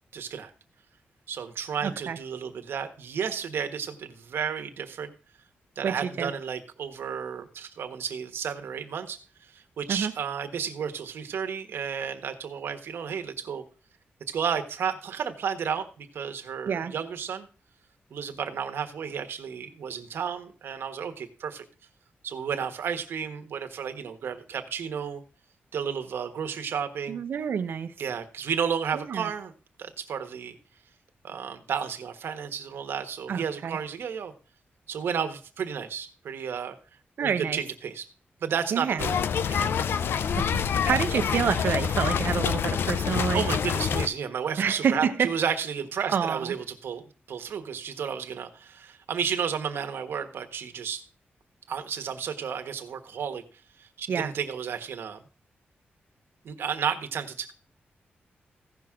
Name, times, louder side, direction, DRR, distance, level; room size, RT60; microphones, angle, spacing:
voice 1, 0.1-0.5 1.3-5.1 5.7-13.6 14.3-17.5 18.1-21.6 22.2-25.2 25.7-27.2 28.0-29.5 29.8-30.6 31.2-34.3 34.9-36.8 37.2-38.1 38.4-39.2 39.5-39.7 43.3-51.0 51.7-53.4 53.8-55.2 56.4-57.5, right 7 dB, 80° right, 1.4 m, -32 dB
voice 2, 1.8-2.2 5.8-6.3 9.9-10.1 16.7-16.9 27.1-27.9 28.9-29.3 33.3-33.8 37.2-37.6 38.7-39.0 40.4-43.4 44.6-45.3 46.1-46.5 54.1-54.3, right 7 dB, 65° right, 0.9 m, -28 dB
sound 1, 39.0-44.1, left 7 dB, 70° left, 0.6 m, -26 dB
16.0 x 6.1 x 3.7 m
wide cardioid pair, 170°, 4 cm